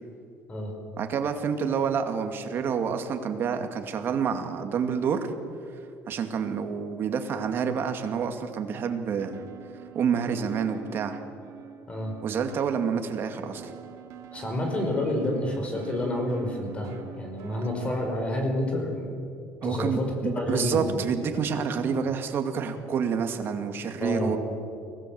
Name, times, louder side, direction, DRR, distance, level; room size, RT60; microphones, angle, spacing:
voice 1, 1.0-5.3 6.1-9.4 9.9-11.2 12.2-13.7 19.6-24.4, right 6 dB, 45° right, 6 dB, 2.3 m, -28 dB
sound 1, 9.2-18.1, right 8 dB, 70° right, 2.2 m, -44 dB
voice 2, 14.3-19.1 19.6-21.0 24.0-24.4, left 1 dB, 25° left, 2 dB, 5.5 m, -29 dB
24.5 x 18.0 x 7.8 m, 2.5 s
cardioid pair, 125°, 5 cm